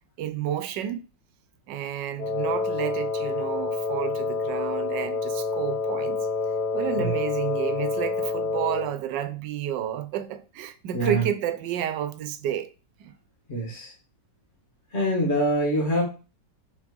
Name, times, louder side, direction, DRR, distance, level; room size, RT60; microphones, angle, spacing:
voice 1, 0.2-1.0 1.7-6.3 6.7-12.7 13.0-13.2, right 10 dB, 80° right, 1.4 m, -31 dB
Wind instrument woodwind instrument, 2.2-9.0, left 4 dB, 65° left, 1.8 m, -28 dB
voice 2, 13.5-13.9 14.9-16.0, right 1 dB, 40° left, 1.8 m, -24 dB
6.3 x 3.7 x 5.2 m
omnidirectional pair, 1.9 m